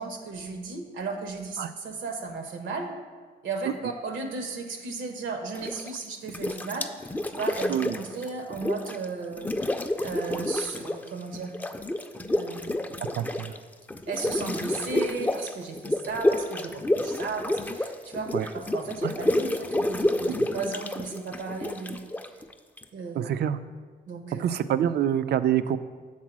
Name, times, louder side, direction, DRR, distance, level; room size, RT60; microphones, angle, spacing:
voice 1, 0.0-2.9 3.4-6.9 7.3-9.5 10.0-11.5 12.3-12.9 14.1-22.0 22.9-23.3 24.1-24.4, right 4 dB, 80° right, 5 dB, 1.1 m, -35 dB
sound 1, 5.5-6.0 6.3-9.1 9.3-11.1 11.3-22.8, left 1 dB, 10° left, 0.4 m, -29 dB
voice 2, 13.1-13.5 18.3-18.5 19.0-19.1 20.3-20.5 23.2-23.6 24.4-25.8, right 10 dB, 55° right, 13 dB, 0.4 m, -26 dB
7.3 x 3.9 x 6.1 m, 1.5 s
cardioid pair, 90°, 20 cm